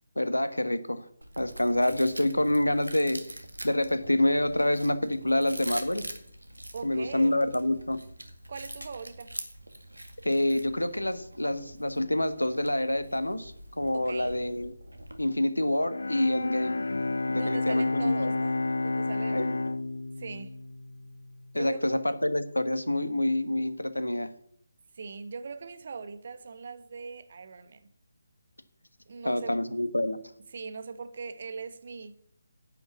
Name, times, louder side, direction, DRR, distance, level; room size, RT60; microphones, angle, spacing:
voice 1, 0.1-1.1 1.4-6.1 6.8-8.0 10.2-14.7 15.2-16.8 17.3-18.3 19.3-19.6 21.5-24.3 29.2-30.2, left 1 dB, 80° left, 1.2 m, -27 dB
Chewing mastication, 1.2-15.3, right 1 dB, 80° right, 1.9 m, -44 dB
voice 2, 6.7-7.4 8.5-9.3 13.9-14.4 17.3-19.6 20.2-20.6 21.6-21.9 24.9-27.9 29.1-29.5 30.5-32.2, right 5 dB, 40° right, 1.1 m, -41 dB
Bowed string instrument, 15.8-21.8, left 2 dB, 60° left, 0.3 m, -31 dB
10.5 x 6.2 x 8.2 m
figure-of-eight pair, 150°, 0 cm